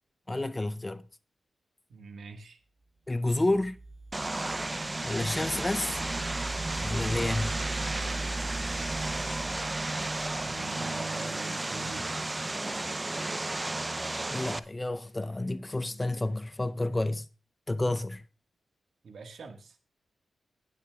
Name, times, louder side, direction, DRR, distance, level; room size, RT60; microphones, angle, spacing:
voice 1, 0.3-1.1 3.1-3.8 5.0-6.0 6.8-7.6 14.3-17.3 17.7-18.2, left 2 dB, 25° left, 0.6 m, -30 dB
voice 2, 1.9-2.6 10.4-12.1 19.0-19.8, right 4 dB, 75° right, 1.6 m, -45 dB
sound 1, 3.3-10.8, right 2 dB, 55° right, 3.4 m, -40 dB
Vehicle, 4.1-14.6, right 2 dB, 30° right, 0.6 m, -33 dB
15.5 x 9.7 x 2.3 m
supercardioid pair, 40°, 0 cm